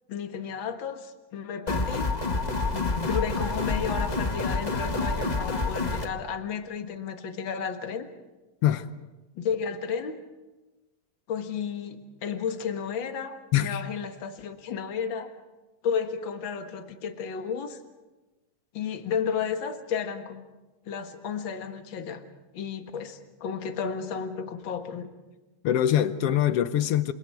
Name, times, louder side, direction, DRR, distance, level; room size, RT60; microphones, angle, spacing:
voice 1, 0.1-2.1 2.7-8.1 9.4-10.2 11.3-15.3 15.8-17.8 18.7-20.4 20.9-22.2 22.5-25.1, left 7 dB, 50° left, 6 dB, 2.0 m, -32 dB
sound 1, 1.7-6.1, left 3 dB, 30° left, 0.8 m, -28 dB
voice 2, 25.6-27.1, left 11 dB, 65° left, 12 dB, 1.6 m, -23 dB
28.5 x 26.0 x 4.7 m, 1.1 s
omnidirectional pair, 3.3 m